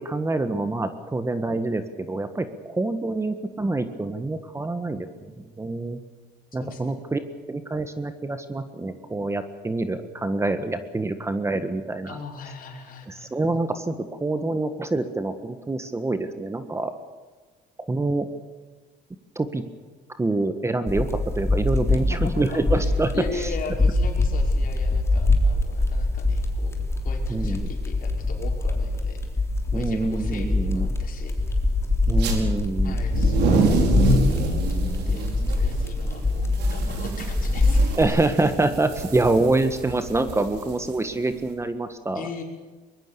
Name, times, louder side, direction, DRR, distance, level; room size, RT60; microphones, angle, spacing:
voice 1, 0.0-5.1 5.4-6.0 6.5-7.2 7.5-12.2 13.1-16.9 17.8-18.3 19.3-19.6 20.2-23.5 27.3-27.7 29.7-30.9 32.1-33.0 38.0-42.3, right 2 dB, 15° right, 9 dB, 1.6 m, -26 dB
voice 2, 6.6-7.2 12.1-13.3 21.9-26.8 27.0-29.2 29.7-31.3 32.8-33.8 34.1-38.2 42.1-42.4, left 5 dB, 55° left, 2 dB, 5.3 m, -39 dB
sound 1, 20.9-38.0, left 2 dB, 15° left, 3.6 m, -24 dB
sound 2, 32.1-32.4 32.9-41.5, right 3 dB, 80° right, 4.9 m, -27 dB
23.5 x 21.0 x 7.0 m, 1.4 s
cardioid pair, 110°, 17 cm